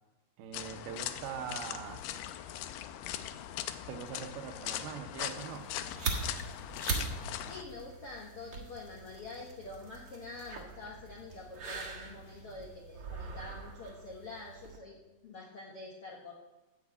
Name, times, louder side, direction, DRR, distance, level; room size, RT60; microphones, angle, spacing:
voice 1, 0.4-2.0 3.9-5.8 6.9-7.2, right 8 dB, 80° right, 7 dB, 2.6 m, -42 dB
sound 1, 0.5-7.6, left 12 dB, 90° left, 2.0 m, -40 dB
sound 2, 5.1-12.7, equal, 50° left, 3.2 m, -60 dB
sound 3, 5.6-14.8, right 4 dB, 55° right, 1.3 m, -41 dB
voice 2, 7.5-15.0 15.2-16.3, left 3 dB, 70° left, -3 dB, 1.3 m, -46 dB
12.5 x 5.7 x 8.3 m, 1.1 s
omnidirectional pair, 4.7 m